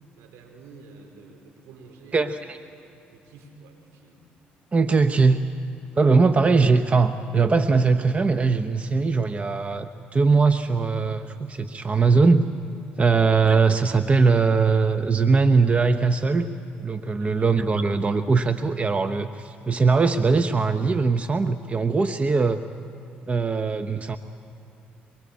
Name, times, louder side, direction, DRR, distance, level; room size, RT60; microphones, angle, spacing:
voice 1, 0.1-2.5 3.1-4.2 13.0-13.2 17.2-17.5, right 4 dB, 80° right, 3 dB, 4.7 m, -49 dB
voice 2, 2.1-2.6 4.7-5.4 5.9-12.4 13.0-16.5 16.8-22.6 23.3-24.2, right 4 dB, 30° right, 10 dB, 1.0 m, -21 dB
23.5 x 23.0 x 8.6 m, 2.8 s
supercardioid pair, 65°, 4 cm